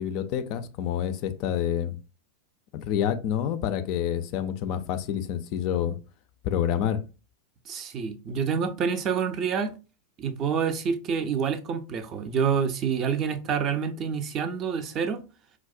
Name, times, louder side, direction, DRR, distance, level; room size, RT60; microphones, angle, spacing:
voice 1, 0.0-2.0 2.7-6.0 6.4-7.0, left 9 dB, 40° left, 0.3 m, -28 dB
voice 2, 7.7-9.8 10.2-15.2, right 6 dB, 30° right, 0.4 m, -27 dB
4.5 x 2.0 x 2.4 m
figure-of-eight pair, 90°, 0 cm